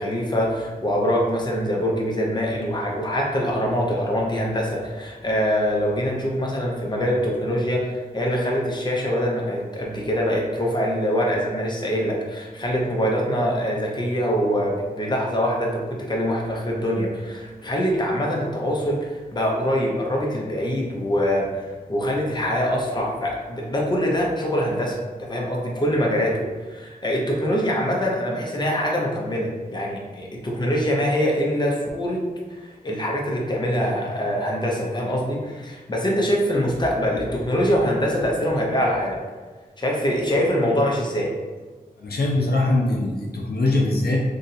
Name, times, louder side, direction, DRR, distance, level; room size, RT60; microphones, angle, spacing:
voice 1, 0.0-21.5 21.9-25.0 25.3-32.2 32.5-39.2 39.8-41.3, equal, 30° left, -2 dB, 0.7 m, -24 dB
voice 2, 42.0-44.2, left 2 dB, 80° left, -2 dB, 0.6 m, -22 dB
2.7 x 2.5 x 4.0 m, 1.3 s
wide cardioid pair, 85°, 16 cm